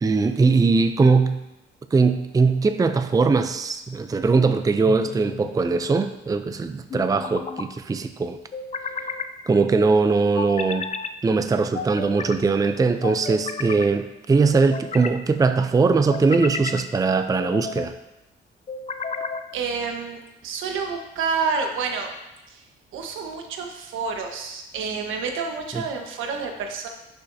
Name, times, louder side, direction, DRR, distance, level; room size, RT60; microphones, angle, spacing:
voice 1, 0.0-1.4 1.9-8.4 9.5-10.9 11.2-17.9 25.7-25.8, right 4 dB, 20° right, 9 dB, 0.5 m, -20 dB
sound 1, 4.9-5.5 6.9-7.7 8.5-9.3 10.4-11.1 11.7-12.4 13.0-13.9 14.5-15.2 15.9-16.8 17.4-17.9 18.7-19.5, left 5 dB, 35° left, 0.6 m, -32 dB
voice 2, 19.5-22.1 22.5-22.7 22.9-26.9, right 5 dB, 85° right, 3 dB, 1.3 m, -29 dB
11.0 x 7.0 x 2.7 m, 0.94 s
cardioid pair, 90°, 20 cm